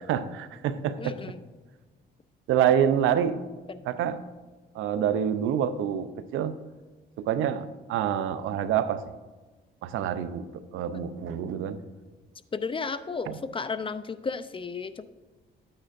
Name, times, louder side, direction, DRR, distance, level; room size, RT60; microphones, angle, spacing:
voice 1, 0.1-1.2 2.5-3.4 3.9-4.2 4.7-6.5 7.2-9.0 9.8-11.8 13.3-13.4, right 9 dB, 90° right, 13 dB, 0.6 m, -27 dB
voice 2, 1.0-1.4 3.7-3.8 12.5-15.1, left 4 dB, 25° left, 11 dB, 0.5 m, -33 dB
13.0 x 8.8 x 2.6 m, 1.3 s
cardioid pair, 90°, 20 cm